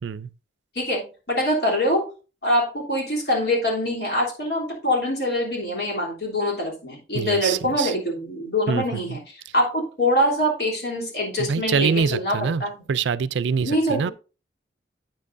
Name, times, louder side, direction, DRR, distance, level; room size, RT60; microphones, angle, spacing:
voice 1, 0.7-2.1 2.4-12.7 13.6-14.0, left 1 dB, 60° left, 3.2 m, -24 dB
voice 2, 7.1-7.9 8.7-9.2 11.4-14.1, right 6 dB, 75° right, 0.4 m, -25 dB
8.9 x 7.6 x 2.6 m
head